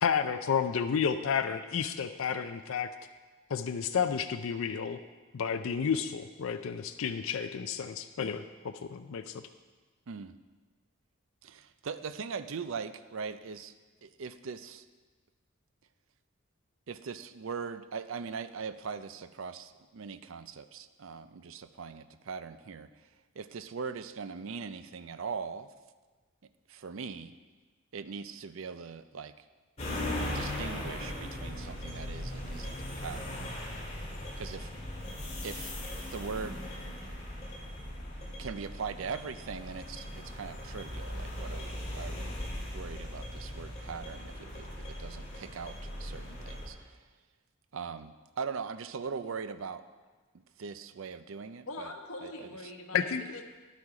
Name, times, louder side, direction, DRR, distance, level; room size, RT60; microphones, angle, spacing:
voice 1, 0.0-2.9 3.5-5.0 5.3-9.4 52.9-53.2, left 7 dB, 70° left, 8 dB, 0.4 m, -31 dB
voice 2, 10.1-10.4 11.4-13.7 14.0-14.8 16.9-22.9 23.4-25.7 26.7-27.3 27.9-29.3 30.3-33.5 34.4-34.7 35.4-35.7 36.1-36.6 38.4-42.3 42.7-47.0 47.7-49.8 50.6-51.9 52.2-52.3, right 5 dB, 65° right, 12 dB, 0.5 m, -40 dB
sound 1, 29.8-46.7, left 1 dB, 30° left, 2.1 m, -39 dB
voice 3, 51.7-53.4, left 2 dB, 90° left, 3 dB, 1.3 m, -43 dB
10.5 x 8.4 x 4.9 m, 1.4 s
head